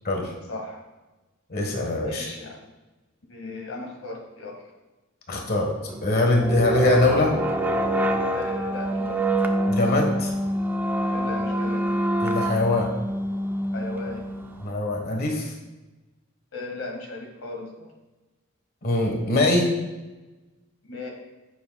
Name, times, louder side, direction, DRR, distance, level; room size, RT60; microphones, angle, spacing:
voice 1, 0.5-0.8 2.0-2.6 3.3-4.7 8.3-9.2 11.1-11.9 13.7-14.2 16.5-17.9 20.8-21.1, left 2 dB, 90° left, 1 dB, 1.9 m, -36 dB
voice 2, 1.5-2.3 5.3-5.7 6.0-7.4 9.7-10.3 12.2-12.9 14.6-15.5 18.8-19.7, left 2 dB, 50° left, 1 dB, 1.4 m, -22 dB
sound 1, 5.9-14.7, right 1 dB, 10° right, 0.6 m, -26 dB
16.0 x 7.3 x 2.3 m, 1.1 s
head